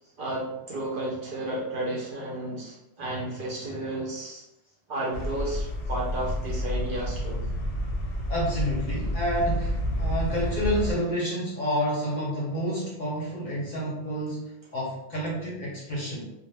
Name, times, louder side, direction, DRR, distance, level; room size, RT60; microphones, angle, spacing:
voice 1, 0.2-4.4 4.9-7.4, right 1 dB, 60° right, -4 dB, 0.6 m, -32 dB
sound 1, 5.1-10.9, left 1 dB, 80° left, 0.9 m, -29 dB
voice 2, 8.3-16.3, equal, 50° left, -5 dB, 0.7 m, -29 dB
2.1 x 2.0 x 3.2 m, 0.88 s
omnidirectional pair, 1.2 m